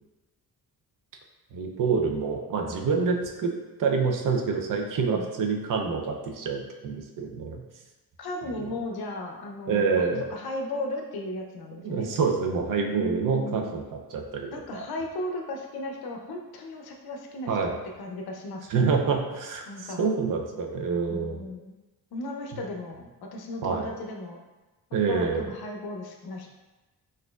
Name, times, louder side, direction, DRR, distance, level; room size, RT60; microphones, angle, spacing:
voice 1, 1.5-3.5 3.8-7.6 8.6-8.7 9.7-10.2 11.8-14.8 17.5-17.7 18.7-21.4 23.6-23.9 24.9-25.5, right 5 dB, 55° right, 2 dB, 0.5 m, -27 dB
voice 2, 5.0-5.3 8.2-12.1 12.8-13.8 14.5-18.7 19.7-20.1 21.1-21.7 22.1-23.0 23.3-24.4 25.1-26.5, left 1 dB, 70° left, 2 dB, 0.6 m, -36 dB
4.1 x 2.6 x 2.3 m, 1.1 s
wide cardioid pair, 130°, 39 cm